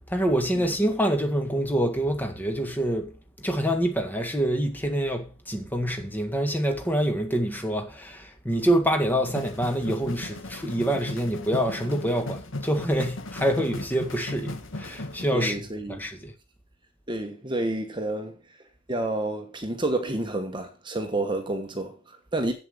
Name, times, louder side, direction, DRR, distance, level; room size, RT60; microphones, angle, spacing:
voice 1, 0.1-15.6 15.9-16.3, equal, 10° left, 1.8 m, -26 dB
sound 1, 9.3-15.2, left 2 dB, 70° left, 1.3 m, -37 dB
voice 2, 15.3-16.0 17.1-18.4 18.9-22.5, right 2 dB, 25° right, 1.2 m, -29 dB
8.3 x 7.7 x 6.6 m
head